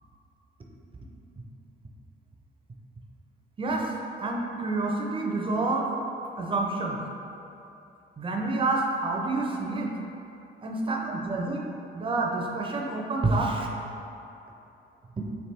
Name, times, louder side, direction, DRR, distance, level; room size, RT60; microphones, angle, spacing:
voice 1, 3.6-3.9 4.2-5.9 6.4-7.0 8.2-9.9 10.6-13.7, right 2 dB, 25° right, 0 dB, 0.5 m, -28 dB
3.3 x 2.7 x 4.3 m, 2.8 s
cardioid pair, 90°, 20 cm